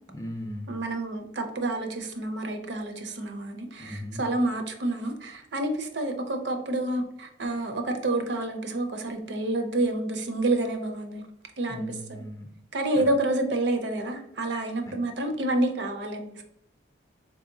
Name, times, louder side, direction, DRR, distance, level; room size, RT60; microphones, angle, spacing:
voice 1, 0.1-0.7 3.8-4.2 11.7-12.5 13.0-13.1 14.9-15.0, left 1 dB, 15° left, 3 dB, 0.4 m, -38 dB
voice 2, 0.7-11.2 11.6-12.2 12.7-16.4, right 2 dB, 65° right, 5 dB, 0.5 m, -29 dB
4.0 x 2.7 x 2.6 m, 0.74 s
head